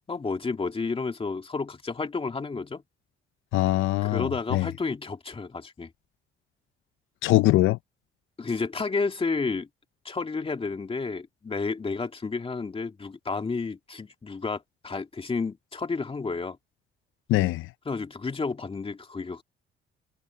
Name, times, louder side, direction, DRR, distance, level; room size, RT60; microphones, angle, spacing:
voice 1, 0.1-2.8 4.0-5.9 8.4-9.7 10.0-16.6 17.9-19.4, left 4 dB, 30° left, 2.2 m, -31 dB
voice 2, 3.5-4.7 7.2-7.8 17.3-17.7, left 17 dB, 85° left, 0.5 m, -22 dB
cardioid pair, 90°, 20 cm